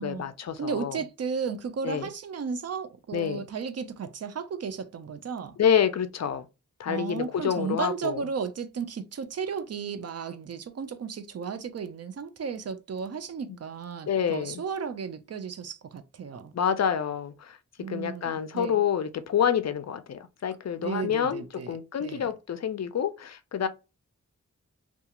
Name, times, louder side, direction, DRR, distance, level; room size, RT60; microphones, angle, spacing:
voice 1, 0.0-1.0 1.8-2.1 3.1-3.5 5.6-6.4 6.8-8.2 14.1-14.6 16.5-17.6 17.9-23.7, left 8 dB, 60° left, 0.4 m, -28 dB
voice 2, 0.6-5.6 6.9-16.5 17.8-18.8 20.8-22.3, right 6 dB, 55° right, 0.5 m, -34 dB
2.3 x 2.3 x 2.8 m
wide cardioid pair, 70°, 31 cm